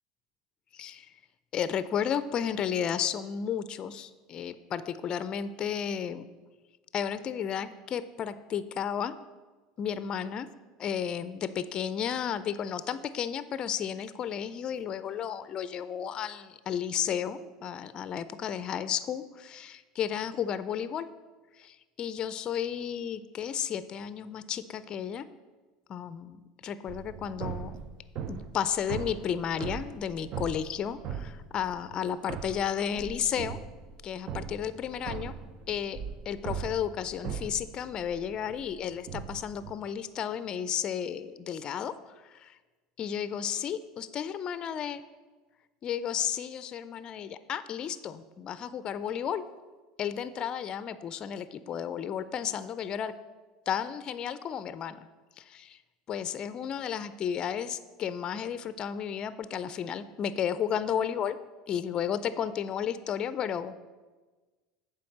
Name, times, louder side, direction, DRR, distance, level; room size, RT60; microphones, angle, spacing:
voice 1, 0.7-1.1 1.5-6.3 6.9-9.2 9.8-10.5 10.8-21.1 21.6-25.3 25.9-27.7 28.3-33.6 34.0-35.3 35.7-36.0 36.3-42.6 43.0-45.0 45.8-49.4 50.0-53.1 53.7-55.1 55.4-55.8 56.1-61.4 61.7-63.9, left 8 dB, 40° left, 14 dB, 0.4 m, -33 dB
sound 1, 26.9-32.0 32.3-39.7, right 7 dB, 50° right, 0.6 m, -40 dB
7.6 x 4.7 x 7.1 m, 1.3 s
supercardioid pair, 100°, 2 cm